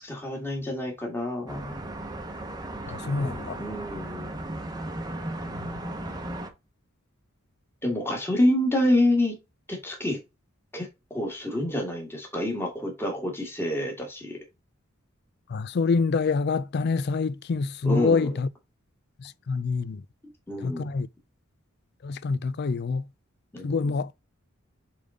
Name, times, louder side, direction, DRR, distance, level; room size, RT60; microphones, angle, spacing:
voice 1, 0.0-1.8 3.0-4.4 7.8-9.3 9.7-10.2 10.7-14.4 17.8-18.3 20.5-20.9 23.5-23.9, left 1 dB, 10° left, 1.8 m, -28 dB
sound 1, 1.5-6.5, right 1 dB, 20° right, 0.9 m, -36 dB
voice 2, 2.9-3.6 5.5-5.7 15.5-18.5 19.2-20.0 20.6-21.1 22.0-23.1 23.6-24.1, left 4 dB, 50° left, 0.4 m, -26 dB
7.0 x 3.9 x 3.7 m
head